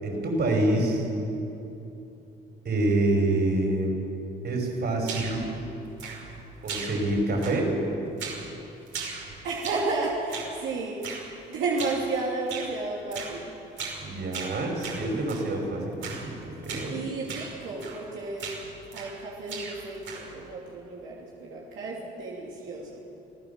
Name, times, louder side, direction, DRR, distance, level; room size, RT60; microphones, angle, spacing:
voice 1, 0.0-1.1 2.6-4.0 4.4-5.5 6.6-7.7 14.0-17.0, right 2 dB, 55° right, 2 dB, 5.9 m, -26 dB
sound 1, 5.0-5.5 6.0-6.4 6.7-7.1 7.4-7.8 8.2-8.5 8.9-9.9 10.3-10.6 11.0-11.3 11.8-12.1 12.5-12.7 13.1-13.4 13.8-14.0 14.3-15.5 16.0-16.3 16.6-16.9 17.3-17.5 17.8-18.1 18.4-19.2 19.5-20.4, right 5 dB, 75° right, 5.5 m, -37 dB
voice 2, 9.4-11.1 11.5-13.6 16.9-18.6 18.9-23.0, right 3 dB, 90° right, -4 dB, 3.0 m, -32 dB
26.5 x 15.5 x 7.3 m, 2.9 s
cardioid pair, 90°, 20 cm